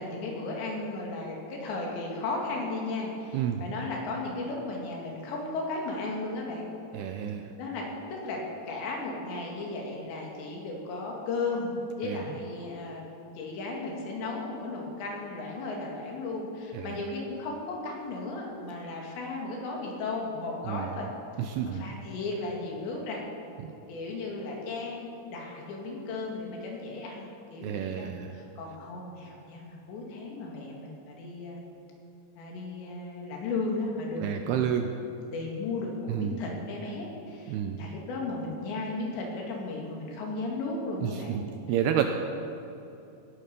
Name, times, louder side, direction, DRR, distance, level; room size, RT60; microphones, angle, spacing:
voice 1, 0.0-6.7 7.6-8.4 8.7-21.1 21.6-23.2 23.9-31.6 32.4-34.7 35.3-41.4 42.0-42.1, left 3 dB, 75° left, -1 dB, 4.5 m, -35 dB
voice 2, 3.3-3.6 6.9-7.5 12.0-12.2 16.7-17.0 20.7-20.9 21.4-21.9 23.6-23.7 27.6-28.3 34.2-34.9 36.1-36.4 37.5-37.8 41.0-42.0, right 9 dB, 80° right, 5 dB, 2.4 m, -30 dB
18.0 x 11.5 x 5.3 m, 2.7 s
omnidirectional pair, 5.2 m